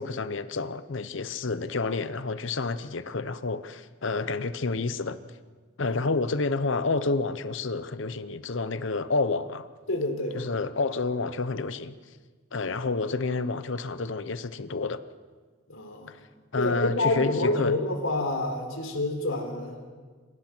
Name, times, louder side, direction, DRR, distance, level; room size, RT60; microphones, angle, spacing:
voice 1, 0.0-5.2 5.8-9.7 10.3-12.0 12.5-15.0 16.1-16.2 16.5-17.7, left 3 dB, 70° left, 0.8 m, -29 dB
voice 2, 9.9-10.4 12.6-12.7 15.7-16.1 16.6-19.8, left 2 dB, 85° left, 3.8 m, -28 dB
27.5 x 16.0 x 6.1 m
head